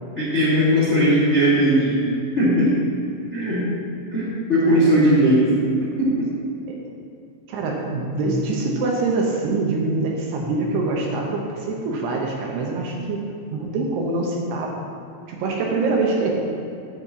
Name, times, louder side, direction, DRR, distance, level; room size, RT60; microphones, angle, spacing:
voice 1, 0.1-2.0 2.4-2.7 3.3-3.6 4.1-5.5 6.0-6.3, equal, 60° left, -8 dB, 0.7 m, -18 dB
voice 2, 7.5-13.3 13.5-14.7 15.3-16.3, right 3 dB, 75° right, -1 dB, 2.7 m, -24 dB
9.9 x 4.2 x 7.5 m, 2.5 s
omnidirectional pair, 5.3 m